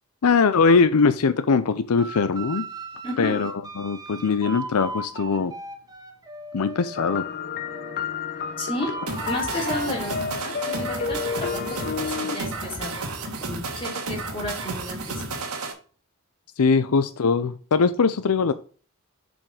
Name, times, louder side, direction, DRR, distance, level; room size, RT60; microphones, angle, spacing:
voice 1, 0.2-2.6 3.2-5.5 6.5-7.3 16.6-18.5, left 5 dB, 85° left, 0.5 m, -21 dB
sound 1, 2.0-7.2 7.7-13.0, right 3 dB, 15° right, 1.1 m, -39 dB
voice 2, 3.0-3.5 8.6-8.9 9.3-15.5 16.9-17.0, left 1 dB, 25° left, 2.9 m, -33 dB
sound 2, 7.0-12.4, left 6 dB, 45° left, 0.6 m, -31 dB
sound 3, 9.1-15.7, right 3 dB, 85° right, 1.7 m, -32 dB
7.2 x 5.2 x 4.9 m
head